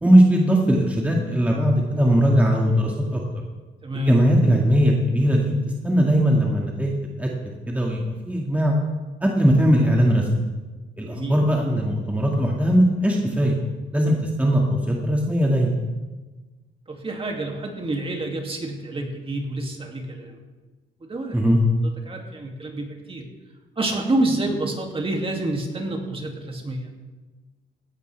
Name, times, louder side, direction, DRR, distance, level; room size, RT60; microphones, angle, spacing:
voice 1, 0.0-3.2 3.9-5.5 5.8-6.9 7.2-7.3 7.7-8.7 9.2-10.4 11.0-13.6 13.9-15.7 21.3-21.6, equal, 5° right, -1 dB, 1.9 m, -19 dB
voice 2, 3.8-4.1 11.0-11.4 16.9-20.4 21.0-21.4 22.1-23.3 23.8-26.9, right 2 dB, 30° right, 1 dB, 2.4 m, -28 dB
16.5 x 12.0 x 3.4 m, 1.2 s
cardioid pair, 90°, 20 cm